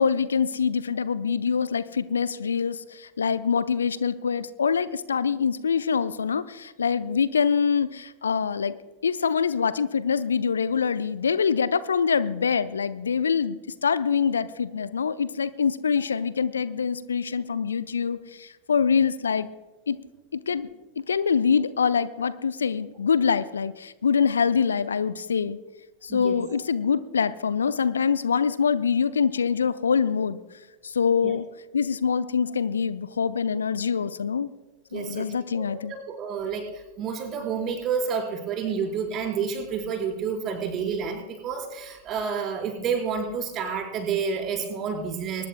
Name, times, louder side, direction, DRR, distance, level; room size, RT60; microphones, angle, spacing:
voice 1, 0.0-8.8 9.0-19.5 19.9-20.0 20.3-20.7 21.1-25.6 26.0-30.4 30.8-31.5 31.7-34.5 34.9-35.9, left 6 dB, 70° left, 15 dB, 0.6 m, -25 dB
voice 2, 34.9-35.3 35.6-45.5, right 6 dB, 30° right, 3 dB, 4.4 m, -29 dB
23.5 x 19.5 x 2.2 m, 1.2 s
figure-of-eight pair, 90°, 0 cm